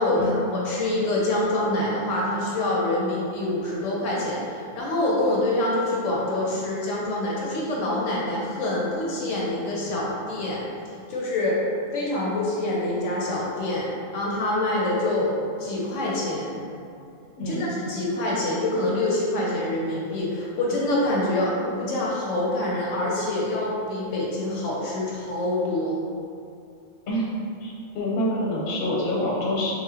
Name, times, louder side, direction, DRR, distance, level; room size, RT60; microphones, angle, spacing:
voice 1, 0.0-10.6 11.1-11.6 11.9-13.9 14.1-16.6 17.4-26.0, left 1 dB, 75° left, -4 dB, 0.9 m, -26 dB
voice 2, 17.4-17.7 27.1-27.3 27.6-29.7, left 1 dB, 50° left, -5 dB, 0.7 m, -26 dB
4.1 x 2.1 x 2.7 m, 2.5 s
omnidirectional pair, 1.4 m